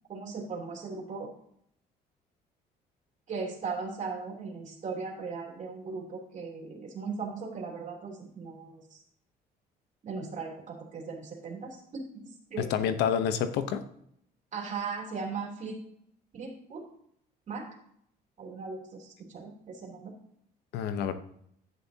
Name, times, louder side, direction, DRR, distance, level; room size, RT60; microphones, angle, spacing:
voice 1, 0.1-1.3 3.3-9.0 10.0-12.7 14.5-15.8 16.3-16.8 17.5-17.6 18.4-20.1, right 4 dB, 45° right, 0 dB, 3.1 m, -38 dB
voice 2, 12.6-13.8 20.7-21.1, left 8 dB, 85° left, 11 dB, 0.9 m, -28 dB
10.5 x 9.5 x 2.8 m, 0.70 s
cardioid pair, 110°, 17 cm